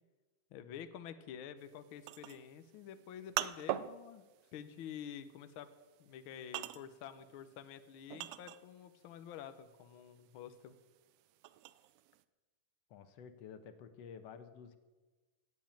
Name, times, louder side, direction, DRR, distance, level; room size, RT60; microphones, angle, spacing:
voice 1, 0.5-4.2 4.5-5.7 6.0-10.7, left 9 dB, 85° left, 11 dB, 1.1 m, -49 dB
sound 1, 1.6-9.0 9.3-12.2, right 14 dB, 75° right, 1.6 m, -43 dB
voice 2, 12.9-14.8, left 7 dB, 65° left, 10 dB, 2.0 m, -51 dB
16.0 x 8.4 x 9.0 m, 1.3 s
omnidirectional pair, 3.4 m